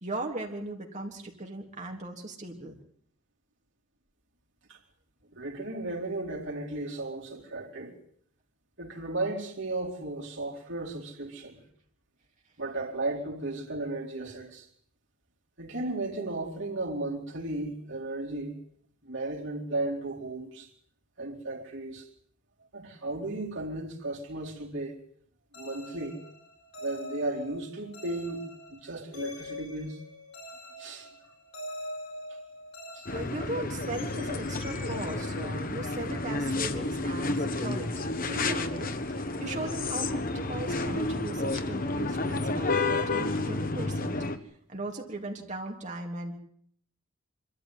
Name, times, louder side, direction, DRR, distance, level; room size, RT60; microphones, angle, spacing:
voice 1, 0.0-2.7 33.1-44.2 44.7-46.4, right 2 dB, 35° right, 3.6 m, -38 dB
voice 2, 5.3-8.0 8.8-11.6 12.6-14.7 15.6-18.6 19.0-20.7 21.2-22.1 22.7-25.0 25.6-26.2 26.8-28.4 28.7-30.0 30.8-31.1 32.9-33.0, right 2 dB, 60° right, 4.2 m, -35 dB
sound 1, 25.5-35.3, left 1 dB, 75° left, 4.5 m, -44 dB
sound 2, 33.1-44.4, left 2 dB, 45° left, 1.3 m, -31 dB
25.0 x 13.5 x 9.3 m
head